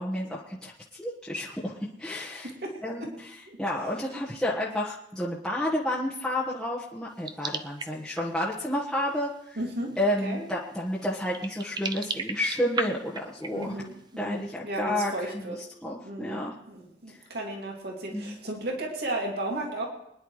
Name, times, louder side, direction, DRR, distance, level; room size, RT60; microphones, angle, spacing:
voice 1, 0.0-2.5 2.8-3.3 3.6-9.3 10.0-13.8 14.2-15.3 15.8-16.5 18.1-18.4, left 1 dB, 5° left, -6 dB, 1.4 m, -30 dB
voice 2, 2.4-3.1 3.5-3.6 4.1-4.2 9.6-10.5 13.5-15.6 16.0-19.9, right 1 dB, 60° right, 0 dB, 2.5 m, -35 dB
sound 1, 7.2-8.5 9.5-9.6 10.2-10.3 11.1-14.0, right 4 dB, 25° right, 0.6 m, -35 dB
24.5 x 10.5 x 3.2 m, 0.78 s
head